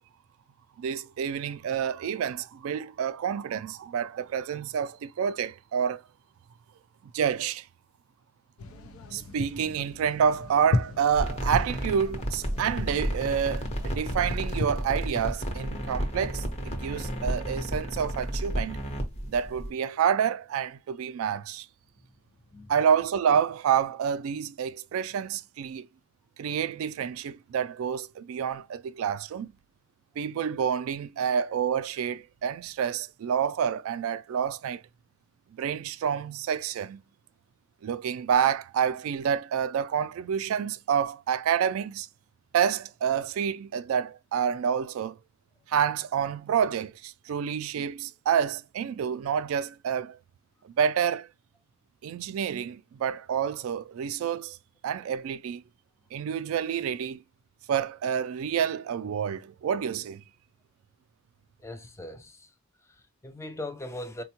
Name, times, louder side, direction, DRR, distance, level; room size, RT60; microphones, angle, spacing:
voice 1, 0.8-6.0 7.1-7.7 9.1-18.8 19.3-21.7 22.7-25.9 26.4-29.5 30.2-34.8 35.6-37.0 37.8-42.1 42.5-45.2 45.7-50.2 50.6-51.3 52.0-54.6 54.8-55.6 56.1-57.2 57.7-60.2, right 8 dB, 70° right, 0.3 m, -28 dB
sound 1, 8.6-14.7, left 3 dB, 80° left, 0.6 m, -35 dB
sound 2, 11.1-19.7, equal, 30° left, 0.8 m, -32 dB
voice 2, 61.6-62.5 62.9-64.2, left 1 dB, 15° left, 0.4 m, -40 dB
4.3 x 2.2 x 2.8 m
head